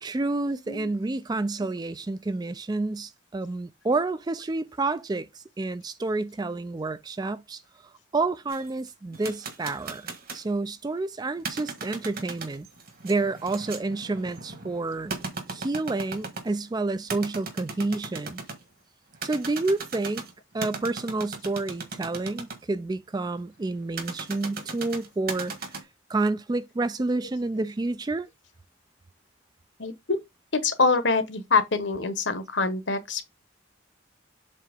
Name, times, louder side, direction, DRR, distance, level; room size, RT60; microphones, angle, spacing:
voice 1, 0.0-5.3 5.6-7.6 8.1-12.7 13.0-15.1 15.5-18.4 19.2-20.3 20.5-25.6 26.1-28.3, right 3 dB, 20° right, 0.3 m, -29 dB
sound 1, 8.5-10.5 11.4-16.6 17.1-18.6 19.1-22.6 24.0-25.8, right 4 dB, 50° right, 1.5 m, -37 dB
voice 2, 29.8-30.2 30.6-33.2, left 4 dB, 65° left, 1.1 m, -25 dB
7.5 x 2.9 x 5.1 m
head